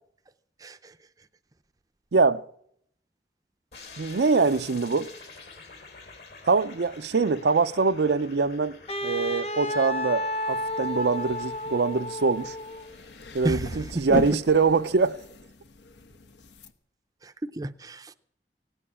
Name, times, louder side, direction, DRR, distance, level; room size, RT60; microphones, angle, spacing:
voice 1, 0.6-1.0 13.4-14.4 17.2-18.1, right 1 dB, 20° right, 0.5 m, -32 dB
voice 2, 2.1-2.4 4.0-5.1 6.5-12.5 13.3-15.2, right 4 dB, 75° right, 0.5 m, -24 dB
sound 1, 3.7-14.0, left 4 dB, 75° left, 3.3 m, -49 dB
Wind instrument woodwind instrument, 8.9-12.9, left 1 dB, 35° left, 0.7 m, -31 dB
sound 2, 10.5-16.7, left 1 dB, 90° left, 1.1 m, -39 dB
17.5 x 9.0 x 8.5 m
head